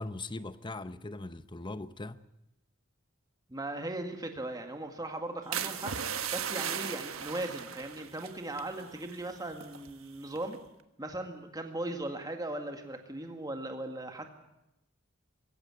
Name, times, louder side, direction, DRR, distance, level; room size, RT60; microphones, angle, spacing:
voice 1, 0.0-2.2, left 2 dB, 25° left, 0.7 m, -40 dB
voice 2, 3.5-10.6 11.0-14.3, right 1 dB, 20° right, 2.0 m, -38 dB
sound 1, 5.5-9.9 10.4-10.7, right 8 dB, 85° right, 1.4 m, -37 dB
21.5 x 16.5 x 9.5 m
head